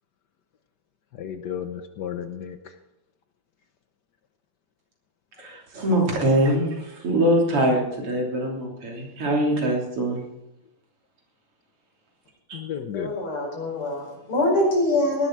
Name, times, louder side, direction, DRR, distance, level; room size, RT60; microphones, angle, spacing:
voice 1, 1.1-2.8 5.4-5.5 12.5-13.2, left 8 dB, 60° left, 8 dB, 1.2 m, -33 dB
voice 2, 5.4-10.2 12.5-12.6, right 1 dB, 90° right, -1 dB, 4.2 m, -23 dB
voice 3, 12.9-15.3, left 1 dB, 80° left, -2 dB, 5.8 m, -24 dB
18.5 x 11.5 x 4.7 m, 0.92 s
omnidirectional pair, 2.4 m